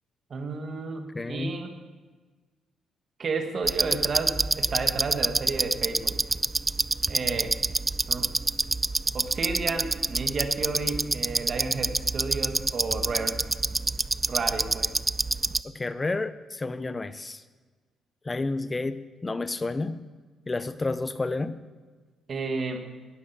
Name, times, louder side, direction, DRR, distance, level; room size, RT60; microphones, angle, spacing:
voice 1, 0.3-1.7 3.2-6.2 7.1-7.5 8.1-8.3 9.1-13.4 14.2-14.9 22.3-22.8, right 4 dB, 45° right, 5 dB, 1.6 m, -32 dB
voice 2, 1.1-1.5 15.6-17.4 18.2-20.0 20.5-21.6, left 3 dB, 25° left, 13 dB, 0.6 m, -30 dB
sound 1, 3.6-15.6, right 3 dB, 20° right, 0.3 m, -27 dB
17.0 x 6.4 x 5.8 m, 1.4 s
cardioid pair, 90°, 0 cm